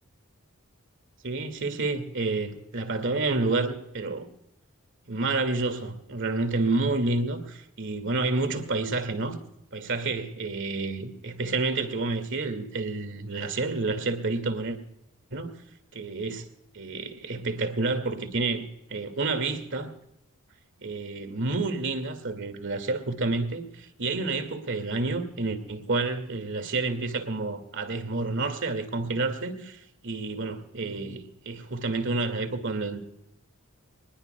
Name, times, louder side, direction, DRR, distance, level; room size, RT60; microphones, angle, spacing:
voice 1, 1.2-4.3 5.1-9.4 9.7-14.8 15.3-15.5 15.9-16.5 16.7-19.9 20.8-33.0, right 3 dB, 60° right, 2.1 m, -29 dB
25.0 x 20.0 x 2.3 m
head